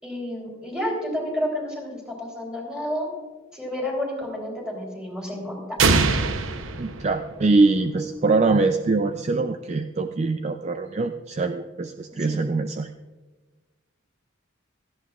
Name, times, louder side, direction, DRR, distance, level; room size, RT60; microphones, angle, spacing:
voice 1, 0.0-3.1 3.5-5.6 12.2-12.4, left 1 dB, 5° right, -2 dB, 3.4 m, -30 dB
sound 1, 5.8-7.7, right 4 dB, 85° right, 0.8 m, -23 dB
voice 2, 6.8-12.9, right 3 dB, 35° right, 7 dB, 0.4 m, -23 dB
17.0 x 13.5 x 2.4 m, 1.3 s
head